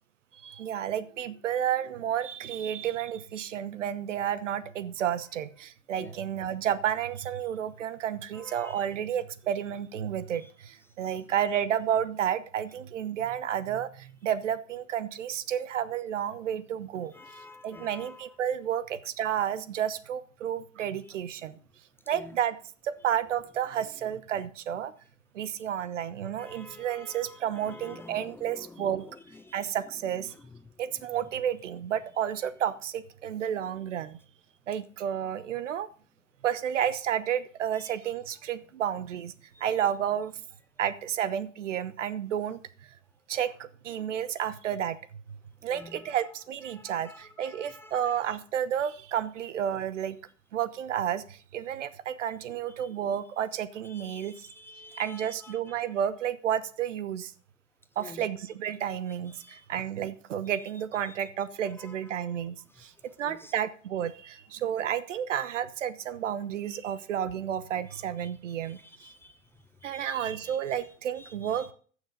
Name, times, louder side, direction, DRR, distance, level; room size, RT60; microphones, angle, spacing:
voice 1, 0.3-17.1 17.6-21.6 22.1-22.6 22.8-24.9 25.3-29.0 29.5-30.3 30.8-34.2 34.7-35.9 36.4-39.3 39.6-40.4 40.8-43.0 43.3-45.0 45.6-50.2 50.5-54.3 55.0-57.3 58.0-62.9 63.2-68.8 69.8-71.7, right 9 dB, 70° right, 15 dB, 1.1 m, -31 dB
voice 2, 8.3-8.9 17.1-18.2 22.1-22.3 26.2-29.6 39.5-39.6 45.7-46.0 46.7-48.1 53.8-55.6 58.0-58.2 59.4-59.6 61.1-61.2 61.8-61.9 63.2-63.5 68.8-69.4 69.8-70.2 70.4-70.8 71.2-71.7, left 2 dB, 5° left, 9 dB, 0.5 m, -49 dB
14.0 x 6.4 x 5.3 m, 0.43 s
hypercardioid pair, 110°, 38 cm